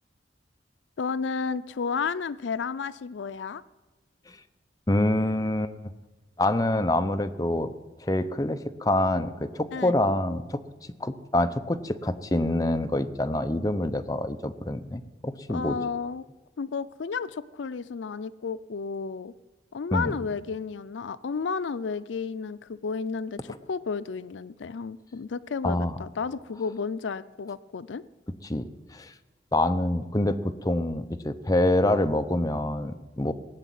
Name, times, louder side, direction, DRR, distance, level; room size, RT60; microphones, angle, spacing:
voice 1, 1.0-3.6 9.7-10.0 15.5-16.2 16.6-19.3 19.7-28.0, left 5 dB, 85° left, 15 dB, 0.5 m, -32 dB
voice 2, 4.9-5.9 6.4-7.7 8.0-10.6 11.0-15.8 19.9-20.1 23.5-23.6 25.6-26.0 28.4-29.1 29.5-33.3, left 1 dB, 20° left, 8 dB, 0.7 m, -26 dB
18.0 x 7.1 x 9.3 m, 1.1 s
head